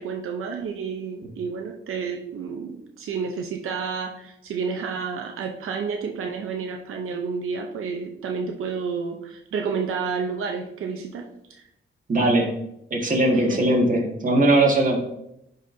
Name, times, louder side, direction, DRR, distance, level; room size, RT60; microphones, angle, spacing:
voice 1, 0.0-11.7 12.2-12.4 13.3-13.6, right 5 dB, 90° right, 2 dB, 0.7 m, -30 dB
voice 2, 12.1-12.5 12.9-15.0, right 1 dB, 40° right, 0 dB, 1.6 m, -19 dB
10.0 x 4.1 x 2.7 m, 0.80 s
cardioid pair, 105°, 21 cm